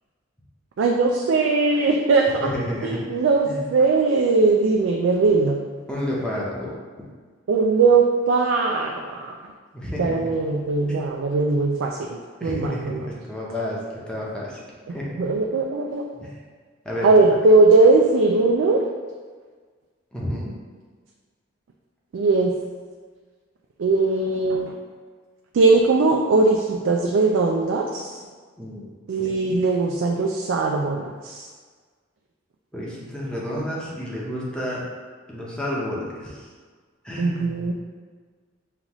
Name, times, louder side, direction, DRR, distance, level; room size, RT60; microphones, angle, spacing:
voice 1, 0.8-2.5 2.8-5.6 7.5-9.4 10.0-13.1 14.9-16.0 17.0-18.8 22.1-22.5 23.8-24.8 25.5-28.2 29.1-31.5 37.2-37.7, right 3 dB, 75° right, 0 dB, 0.3 m, -20 dB
voice 2, 2.4-3.1 3.4-3.7 5.9-6.8 9.7-10.2 10.9-11.0 12.4-14.6 14.9-15.2 16.2-16.3 16.8-17.1 20.1-20.5 28.6-28.8 29.2-29.5 32.7-34.9 35.3-36.5 37.0-37.7, left 1 dB, 5° left, -5 dB, 0.7 m, -30 dB
5.4 x 2.5 x 3.0 m, 1.5 s
head